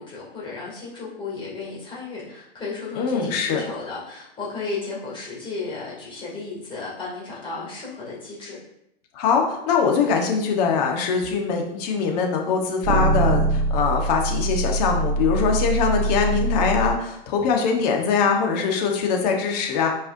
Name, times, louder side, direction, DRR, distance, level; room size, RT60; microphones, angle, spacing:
voice 1, 0.0-8.6, left 3 dB, 15° left, -5 dB, 2.4 m, -34 dB
voice 2, 2.9-3.6 9.1-19.9, left 5 dB, 40° left, 2 dB, 1.3 m, -22 dB
sound 1, 11.2-11.3 12.8-16.9, right 2 dB, 55° right, 0.9 m, -23 dB
8.0 x 4.8 x 2.7 m, 0.80 s
hypercardioid pair, 135°, 32 cm